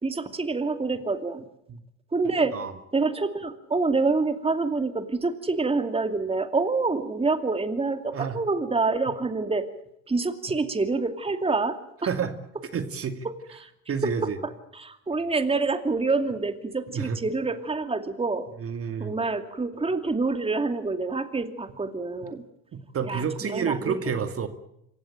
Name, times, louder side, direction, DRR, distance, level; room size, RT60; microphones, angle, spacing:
voice 1, 0.0-1.4 2.1-2.5 2.9-9.7 10.1-12.1 13.2-13.7 14.0-14.1 14.4-18.5 19.0-22.4 23.0-24.0, right 3 dB, 15° right, 8 dB, 2.5 m, -27 dB
voice 2, 12.7-13.2 13.9-14.4 16.9-17.2 18.6-19.1 22.7-24.5, right 6 dB, 40° right, 9 dB, 2.5 m, -29 dB
27.0 x 16.0 x 8.9 m, 0.79 s
hypercardioid pair, 75°, 37 cm